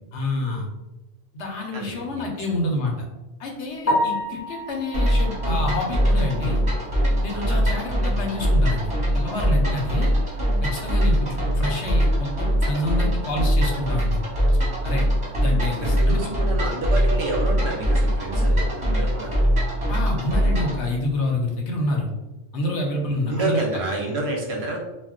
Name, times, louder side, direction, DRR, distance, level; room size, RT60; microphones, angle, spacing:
voice 1, 0.1-0.7 1.3-3.1 3.4-6.6 7.2-10.1 10.6-14.2 14.8-15.0 15.4-16.3 19.9-22.1 22.5-23.7, left 1 dB, 65° left, 0 dB, 0.8 m, -28 dB
voice 2, 1.7-2.2 7.3-7.6 15.8-19.4 23.1-24.8, right 2 dB, 65° right, 0 dB, 0.7 m, -29 dB
Piano, 3.8-7.8 8.2-8.3 8.8-8.9 9.2-9.3 12.4-12.5 21.0-21.3, left 1 dB, 15° left, 0.6 m, -30 dB
sound 1, 4.9-20.8, equal, 25° right, 0.8 m, -22 dB
2.3 x 2.1 x 3.6 m, 1.0 s
omnidirectional pair, 1.3 m